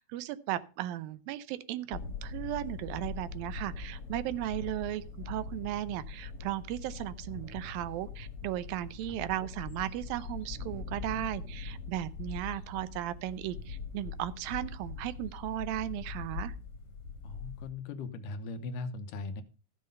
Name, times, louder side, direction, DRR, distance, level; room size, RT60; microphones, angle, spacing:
voice 1, 0.0-16.6, right 14 dB, 85° right, 15 dB, 2.5 m, -36 dB
sound 1, 1.9-17.7, left 4 dB, 50° left, 2.1 m, -42 dB
voice 2, 17.2-19.4, left 3 dB, 70° left, 10 dB, 2.4 m, -39 dB
14.0 x 7.7 x 5.4 m, 0.34 s
omnidirectional pair, 4.1 m